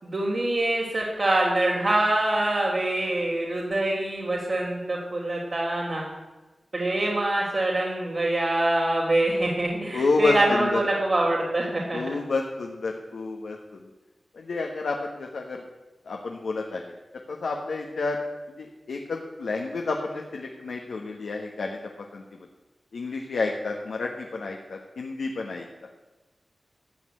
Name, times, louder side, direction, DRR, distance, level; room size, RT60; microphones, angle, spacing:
voice 1, 0.0-6.1 6.7-12.2, right 1 dB, 65° right, -6 dB, 3.4 m, -25 dB
voice 2, 9.9-10.8 11.9-13.8 14.3-15.6 16.0-16.9 17.3-18.2 18.6-21.8 22.1-22.2 22.9-25.7, left 3 dB, 85° left, 1 dB, 1.3 m, -29 dB
14.0 x 6.4 x 9.0 m, 1.1 s
cardioid pair, 40°, 0 cm